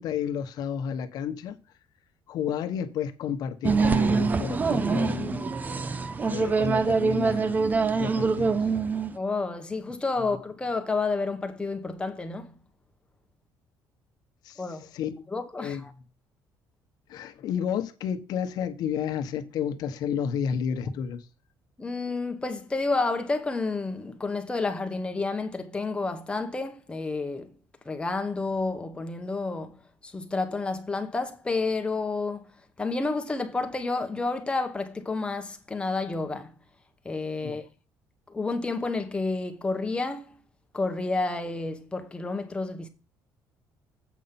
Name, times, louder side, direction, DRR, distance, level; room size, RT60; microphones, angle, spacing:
voice 1, 0.0-1.6 2.3-5.5 6.3-7.7 8.0-8.6 14.4-14.7 14.9-15.1 15.6-15.8 17.1-21.2 37.4-37.6, left 8 dB, 65° left, 1.2 m, -31 dB
sound 1, 3.6-9.1, right 4 dB, 25° right, 0.7 m, -25 dB
voice 2, 9.1-12.5 14.6-15.9 21.8-27.5 27.8-29.8 30.0-32.4 32.8-36.5 37.0-37.6 38.3-40.4 40.7-42.9, left 3 dB, 15° left, 1.4 m, -30 dB
8.3 x 5.5 x 5.9 m
cardioid pair, 135°, 7 cm